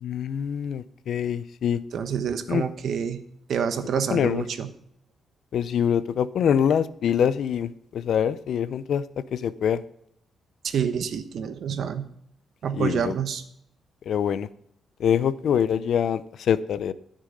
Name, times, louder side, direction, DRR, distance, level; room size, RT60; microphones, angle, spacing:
voice 1, 0.0-1.8 2.5-2.6 4.1-4.4 5.5-9.0 9.3-9.8 12.8-13.1 14.1-14.5 15.0-16.2 16.5-16.9, left 8 dB, 65° left, 15 dB, 0.6 m, -24 dB
voice 2, 1.9-3.2 3.5-4.7 10.6-12.1 12.6-13.4, right 7 dB, 65° right, 9 dB, 1.1 m, -27 dB
14.0 x 6.4 x 5.2 m, 0.70 s
cardioid pair, 115°, 0 cm